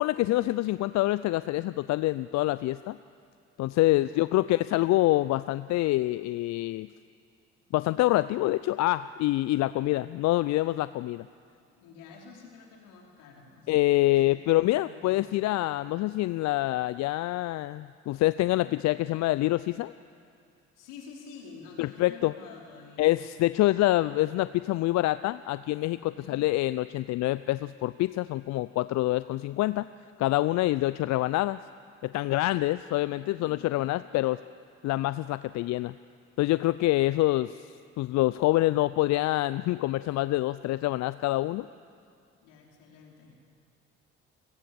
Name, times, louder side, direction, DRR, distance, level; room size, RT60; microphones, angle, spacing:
voice 1, 0.0-3.0 3.6-6.9 7.7-11.3 13.7-19.9 21.8-22.3 23.0-29.8 30.2-31.6 32.0-34.4 34.8-35.9 36.4-37.7 38.0-41.7, left 17 dB, 55° left, 16 dB, 0.5 m, -26 dB
voice 2, 3.7-4.4 11.7-15.3 20.7-23.1 26.0-26.4 33.0-34.2 42.4-43.3, left 5 dB, 70° left, -1 dB, 4.4 m, -50 dB
29.5 x 17.5 x 7.1 m, 2.4 s
hypercardioid pair, 50°, 33 cm